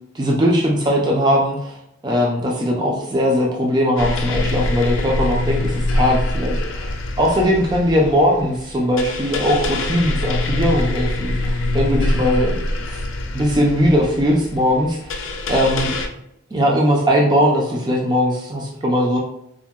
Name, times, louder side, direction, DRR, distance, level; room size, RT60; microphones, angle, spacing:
voice 1, 0.1-1.8 2.0-13.0 13.3-15.1 15.5-15.9 16.5-19.2, equal, 20° right, -2 dB, 0.3 m, -19 dB
sound 1, 4.0-16.1, left 2 dB, 60° left, 0.4 m, -24 dB
3.6 x 2.0 x 2.2 m, 0.77 s
head